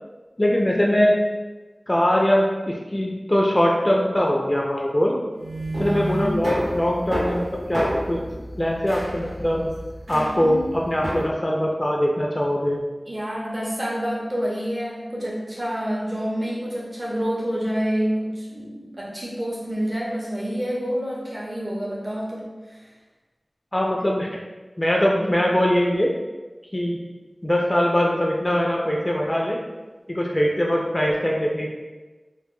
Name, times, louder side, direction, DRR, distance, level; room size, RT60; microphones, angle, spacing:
voice 1, 0.4-1.1 1.9-5.2 5.8-8.2 8.6-9.7 10.1-10.5 10.9-12.8 23.7-24.3 24.8-26.1 26.7-27.0 27.4-29.6 30.1-31.7, equal, 30° left, -2 dB, 0.3 m, -22 dB
sound 1, 5.3-11.2, right 1 dB, 90° right, 0.9 m, -30 dB
voice 2, 5.8-6.4 10.1-10.6 13.1-22.9, equal, 35° right, -6 dB, 0.6 m, -28 dB
2.1 x 2.1 x 3.0 m, 1.2 s
wide cardioid pair, 50°, 0 cm